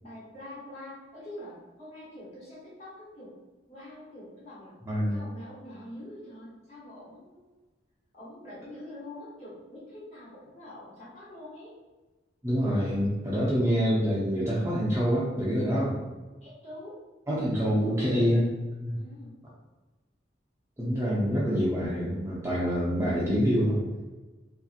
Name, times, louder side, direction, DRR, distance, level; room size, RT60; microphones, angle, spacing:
voice 1, 0.0-3.4 3.7-4.8 5.1-7.6 8.1-11.7 16.4-17.0 18.9-19.4, left 1 dB, 35° left, -8 dB, 1.1 m, -45 dB
voice 2, 4.9-5.2 12.4-16.0 17.3-18.5 18.8-18.9 20.8-23.8, equal, 15° right, -7 dB, 0.4 m, -26 dB
2.7 x 2.4 x 2.4 m, 1.2 s
head